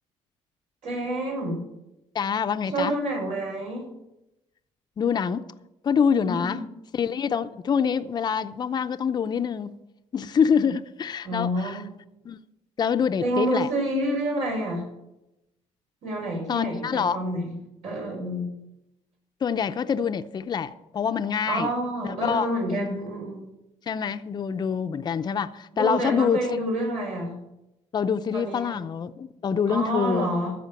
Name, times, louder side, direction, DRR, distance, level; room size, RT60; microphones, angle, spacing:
voice 1, 0.8-1.7 2.7-3.9 6.2-6.6 11.2-11.9 13.2-14.9 16.0-17.5 17.8-18.5 21.5-23.5 25.7-27.4 28.3-28.7 29.7-30.6, right 1 dB, 75° right, 5.2 m, -28 dB
voice 2, 2.1-3.0 5.0-5.5 5.8-6.6 6.9-9.8 10.1-11.8 12.2-12.4 12.8-13.7 16.5-17.2 19.4-21.7 22.0-23.1 23.9-26.6 27.9-30.3, left 7 dB, 35° left, 0.6 m, -26 dB
13.5 x 5.0 x 8.8 m
cardioid pair, 105°, 12 cm